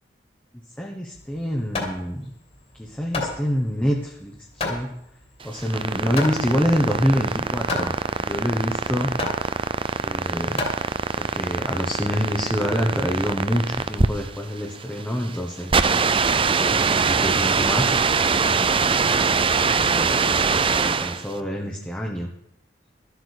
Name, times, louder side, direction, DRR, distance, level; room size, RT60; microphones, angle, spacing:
voice 1, 0.8-2.3 2.8-5.0 5.4-9.1 10.0-10.6 11.2-18.0 18.8-19.4 19.8-22.3, equal, 10° left, 0 dB, 1.2 m, -27 dB
Hammer, 1.1-11.4, left 3 dB, 35° left, 2.7 m, -33 dB
sound 1, 5.4-21.3, right 5 dB, 30° right, 0.6 m, -23 dB
13.0 x 8.3 x 6.6 m, 0.75 s
head